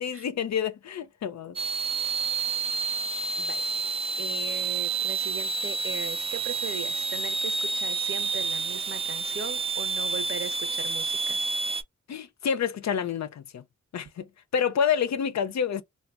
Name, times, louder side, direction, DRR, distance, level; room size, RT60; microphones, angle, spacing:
voice 1, 0.0-1.6 12.1-13.6 13.9-14.3 14.5-15.8, left 7 dB, 60° left, 0.5 m, -28 dB
sound 1, 1.6-11.8, right 4 dB, 20° right, 0.3 m, -29 dB
voice 2, 4.2-11.4, right 6 dB, 45° right, 0.7 m, -38 dB
3.3 x 2.2 x 2.4 m
cardioid pair, 65°, 31 cm